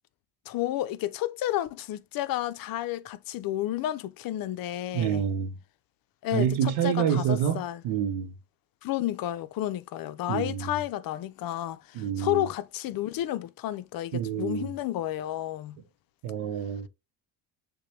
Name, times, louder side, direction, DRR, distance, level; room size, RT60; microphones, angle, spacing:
voice 1, 0.5-5.2 6.2-7.8 8.8-15.8, left 13 dB, 50° left, 0.5 m, -31 dB
voice 2, 4.9-5.6 6.3-8.3 10.3-10.8 11.9-12.5 14.1-14.7 16.2-16.9, right 9 dB, 70° right, 0.7 m, -28 dB
6.5 x 2.3 x 3.1 m
supercardioid pair, 75°, 46 cm